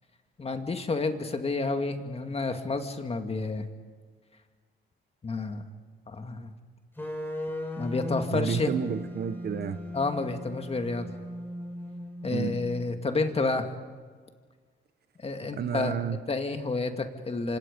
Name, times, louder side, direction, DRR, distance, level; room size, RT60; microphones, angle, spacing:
voice 1, 0.4-3.7 5.2-5.6 6.1-6.5 7.8-8.7 9.9-11.1 12.2-13.7 15.2-16.0 16.3-17.6, left 3 dB, 30° left, 6 dB, 2.2 m, -30 dB
sound 1, 7.0-13.0, left 1 dB, 10° left, 4.9 m, -37 dB
voice 2, 8.3-9.8 12.3-12.5 15.5-16.2, right 7 dB, 55° right, 11 dB, 1.3 m, -30 dB
29.5 x 25.5 x 5.3 m, 1.5 s
cardioid pair, 90°, 20 cm